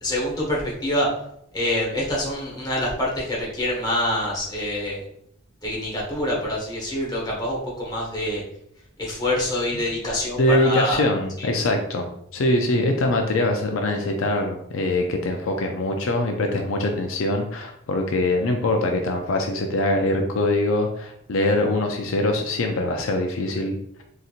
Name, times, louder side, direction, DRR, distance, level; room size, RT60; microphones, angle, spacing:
voice 1, 0.0-1.1 1.5-5.0 5.6-8.4 9.0-11.0 11.4-11.5, left 1 dB, 20° left, -4 dB, 0.9 m, -26 dB
voice 2, 10.1-24.0, left 2 dB, 70° left, 3 dB, 0.4 m, -23 dB
4.0 x 2.8 x 2.4 m, 0.74 s
head